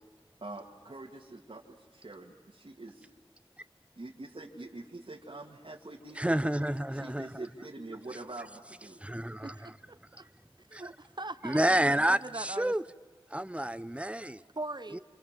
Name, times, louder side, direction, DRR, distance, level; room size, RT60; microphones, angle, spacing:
voice 1, 0.4-3.1 4.0-6.4 6.9-9.0, right 2 dB, 65° right, 2.1 m, -45 dB
voice 2, 6.2-7.3 9.0-9.7 10.7-10.9 11.4-12.8 13.3-14.4 14.9-15.0, right 1 dB, 10° right, 0.8 m, -29 dB
voice 3, 9.4-10.3 10.7-12.7 14.6-15.0, right 2 dB, 50° right, 0.8 m, -41 dB
27.5 x 27.0 x 7.5 m
wide cardioid pair, 50°, 10 cm